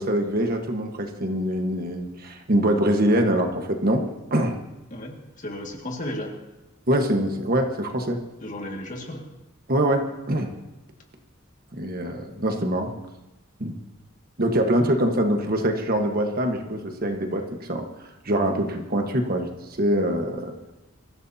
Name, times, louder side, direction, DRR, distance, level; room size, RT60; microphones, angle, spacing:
voice 1, 0.0-4.6 6.9-8.2 9.7-10.5 11.7-12.9 13.6-13.7 14.4-17.9 18.2-19.5 19.8-20.5, right 1 dB, 45° right, 4 dB, 1.4 m, -24 dB
voice 2, 4.9-6.4 8.4-9.2 14.8-14.9, left 1 dB, 40° left, 1 dB, 2.1 m, -34 dB
24.0 x 15.0 x 2.9 m, 1.0 s
head